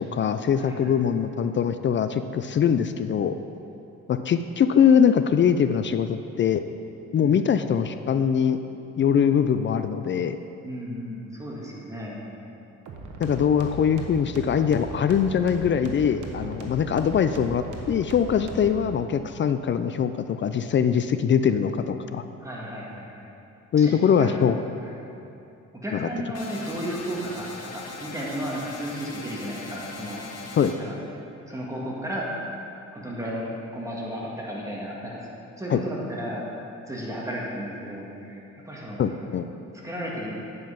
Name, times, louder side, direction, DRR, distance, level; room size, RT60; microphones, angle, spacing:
voice 1, 0.0-3.4 4.1-6.6 7.1-8.6 9.0-10.4 13.2-22.2 23.7-24.6 25.9-26.1 30.6-30.7 35.7-35.8 39.0-39.5, left 7 dB, 40° left, 10 dB, 0.4 m, -22 dB
voice 2, 0.5-0.9 7.2-7.5 10.6-12.4 22.4-23.3 23.7-24.3 24.8-25.0 25.8-30.2 30.8-30.9 31.5-32.3 32.9-35.3 35.6-36.4 36.9-39.0 39.8-40.4, equal, 10° right, -5 dB, 1.8 m, -34 dB
sound 1, 12.9-18.8, right 1 dB, 70° right, 1.2 m, -38 dB
sound 2, 26.3-30.7, left 4 dB, 60° left, 1.2 m, -40 dB
9.2 x 5.4 x 5.7 m, 2.8 s
cardioid pair, 90°, 30 cm